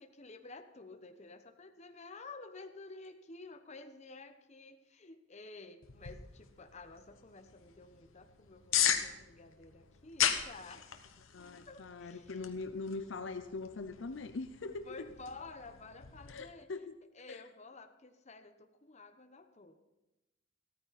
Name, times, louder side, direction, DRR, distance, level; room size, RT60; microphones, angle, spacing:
voice 1, 0.0-10.8 11.7-12.4 14.9-16.7 17.1-19.8, left 3 dB, 35° left, 7 dB, 1.0 m, -51 dB
sound 1, 5.8-16.4, left 9 dB, 90° left, 1.1 m, -38 dB
voice 2, 11.3-15.1 16.3-17.0 17.3-17.4, left 3 dB, 65° left, 10 dB, 0.6 m, -42 dB
15.0 x 13.5 x 4.1 m, 1.0 s
head